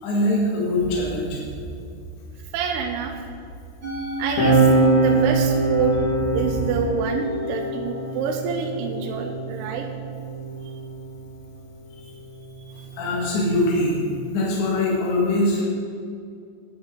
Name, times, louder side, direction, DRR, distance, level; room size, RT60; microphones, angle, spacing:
voice 1, 0.0-1.4 11.9-12.1 12.7-14.0 14.3-15.6, left 1 dB, 75° left, -4 dB, 4.3 m, -23 dB
sound 1, 0.8-7.2, right 2 dB, 60° right, 2.2 m, -37 dB
voice 2, 2.5-3.1 4.0-6.0 6.3-9.9 12.6-12.9, right 6 dB, 80° right, 2 dB, 2.5 m, -27 dB
Musical instrument, 3.8-10.2, left 1 dB, 35° right, 1.8 m, -35 dB
sound 2, 4.4-11.3 12.3-14.1, right 3 dB, 55° left, 3.2 m, -24 dB
13.0 x 8.9 x 3.9 m, 2.3 s
omnidirectional pair, 5.2 m